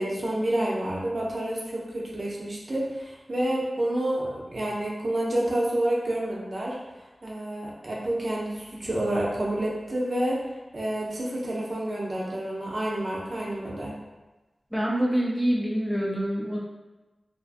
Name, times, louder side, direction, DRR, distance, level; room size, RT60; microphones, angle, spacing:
voice 1, 0.0-6.8 7.2-10.4 10.7-13.9, right 1 dB, 50° right, -4 dB, 0.5 m, -29 dB
voice 2, 14.7-16.6, equal, 5° left, -4 dB, 0.4 m, -26 dB
2.4 x 2.4 x 2.4 m, 1.1 s
wide cardioid pair, 85°, 0 cm